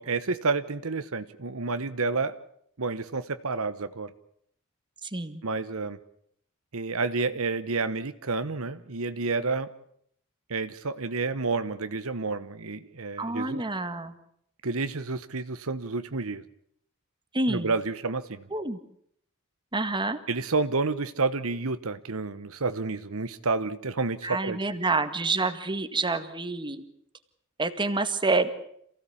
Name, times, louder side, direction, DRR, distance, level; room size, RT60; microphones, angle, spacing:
voice 1, 0.0-2.4 2.8-4.1 5.4-6.0 6.7-9.7 10.5-13.6 14.6-16.4 17.5-18.5 20.3-24.6, right 3 dB, 70° right, 12 dB, 1.1 m, -30 dB
voice 2, 5.0-5.4 13.2-14.2 17.3-17.7 18.5-18.8 19.7-20.2 24.2-26.8 27.6-28.5, right 3 dB, 20° right, 9 dB, 1.9 m, -28 dB
27.5 x 16.5 x 8.6 m, 0.70 s
head